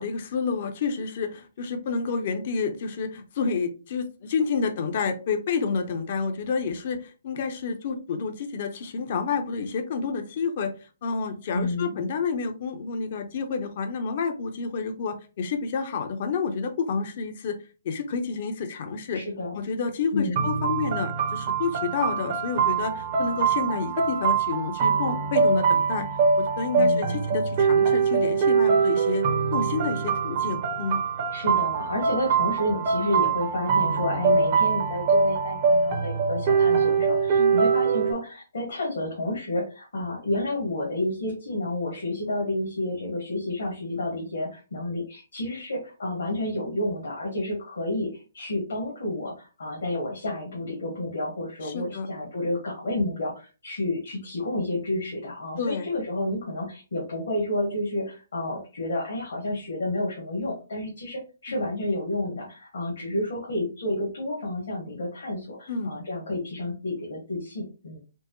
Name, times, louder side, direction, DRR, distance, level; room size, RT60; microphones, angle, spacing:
voice 1, 0.0-10.7 11.0-17.6 17.8-19.2 19.5-26.1 26.4-29.3 29.5-31.0 37.4-37.6 51.6-52.1 55.6-55.9 61.5-61.7 65.7-65.9, left 5 dB, 50° left, 7 dB, 0.7 m, -29 dB
voice 2, 11.5-11.9 19.1-19.7 20.1-20.4 26.7-27.2 31.3-68.0, left 1 dB, 70° left, -3 dB, 1.4 m, -30 dB
sound 1, 20.4-38.1, right 5 dB, 40° right, 0.9 m, -23 dB
4.4 x 2.1 x 3.1 m, 0.34 s
figure-of-eight pair, 130°, 0 cm